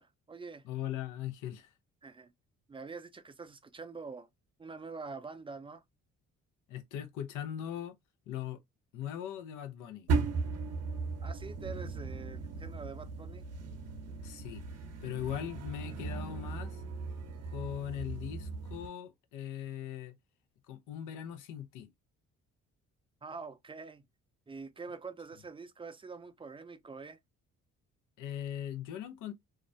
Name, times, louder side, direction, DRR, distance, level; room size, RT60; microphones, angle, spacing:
voice 1, 0.0-0.6 2.0-2.3 2.7-4.3 4.6-5.8 11.2-13.5 23.2-24.1 24.5-27.2, right 4 dB, 20° right, 0.3 m, -45 dB
voice 2, 0.6-1.7 6.7-8.0 8.3-8.6 8.9-10.1 14.2-14.6 15.0-16.8 17.5-20.1 20.7-21.9 28.2-29.3, left 10 dB, 90° left, 0.6 m, -40 dB
sound 1, 10.1-18.9, right 4 dB, 55° right, 0.7 m, -37 dB
2.4 x 2.0 x 2.5 m
cardioid pair, 90°, 30 cm